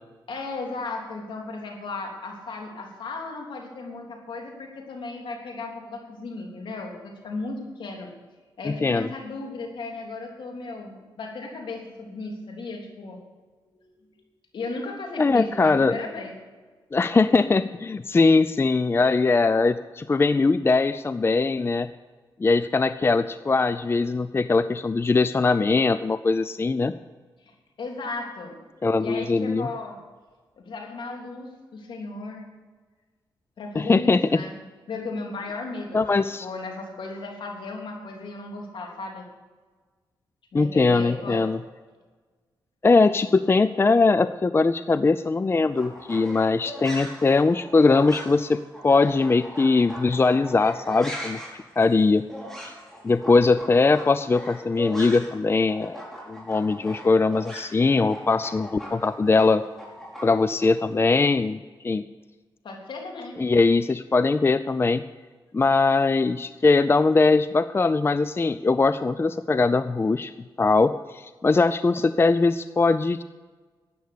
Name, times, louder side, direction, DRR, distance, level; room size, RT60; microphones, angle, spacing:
voice 1, 0.3-8.1 8.6-13.2 14.0-14.1 14.5-16.3 27.4-28.5 29.0-30.0 30.6-32.5 33.6-34.5 34.9-39.3 40.5-41.5 62.6-63.4, left 3 dB, 70° left, 1 dB, 3.4 m, -35 dB
voice 2, 8.7-9.1 15.2-16.0 16.9-21.9 22.4-26.9 28.8-29.7 33.8-34.4 35.9-36.5 40.5-41.6 42.8-51.4 51.8-52.3 52.6-52.7 53.0-56.0 56.3-59.6 60.2-61.6 61.8-62.0 63.4-65.0 65.5-70.3 70.6-73.2, left 3 dB, 30° left, 13 dB, 0.5 m, -21 dB
sound 1, 45.7-55.4 55.7-60.7, equal, 5° left, 5.2 m, -40 dB
13.0 x 9.5 x 6.8 m, 1.4 s
cardioid pair, 70°, 9 cm